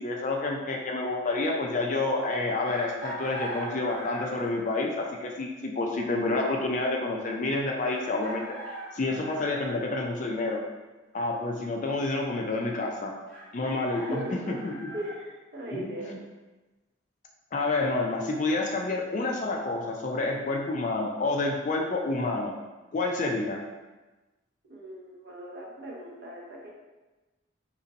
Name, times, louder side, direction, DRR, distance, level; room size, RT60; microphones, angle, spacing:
voice 1, 0.0-8.5 8.9-10.6 11.1-13.1 13.5-14.9 15.7-16.2 17.5-22.5 22.9-23.6, left 2 dB, 40° left, 0 dB, 0.4 m, -29 dB
Chicken rooster, 2.7-4.6 6.3-6.4 7.9-9.8 13.3-15.1, right 1 dB, 5° left, 1.1 m, -40 dB
voice 2, 13.9-14.6 14.9-16.2 24.7-26.7, right 1 dB, 50° right, -3 dB, 0.7 m, -38 dB
2.7 x 2.5 x 3.9 m, 1.2 s
head